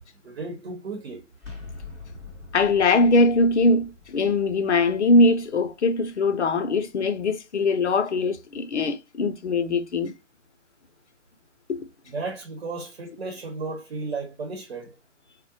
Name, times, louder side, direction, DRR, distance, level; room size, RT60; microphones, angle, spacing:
voice 1, 0.2-1.3 12.1-15.0, right 3 dB, 55° right, 0.9 m, -34 dB
sound 1, 1.4-7.1, left 3 dB, ahead, 0.8 m, -45 dB
voice 2, 2.5-10.1 11.7-11.8, left 2 dB, 65° left, 0.6 m, -21 dB
3.6 x 2.1 x 2.8 m
figure-of-eight pair, 140°, 37 cm